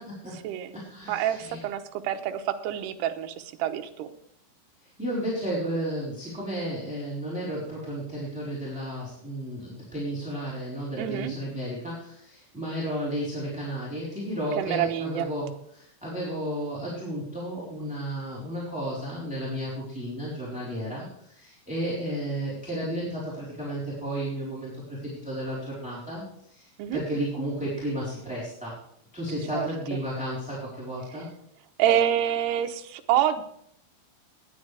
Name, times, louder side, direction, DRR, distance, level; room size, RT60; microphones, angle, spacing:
voice 1, 0.0-0.4 0.7-1.6 5.0-28.7 29.1-31.3, equal, ahead, -7 dB, 3.4 m, -33 dB
voice 2, 1.1-4.1 11.0-11.3 14.6-15.3 26.8-27.0 29.5-30.0 31.8-33.4, right 10 dB, 75° right, 6 dB, 2.7 m, -27 dB
18.5 x 10.5 x 3.4 m, 0.70 s
omnidirectional pair, 5.2 m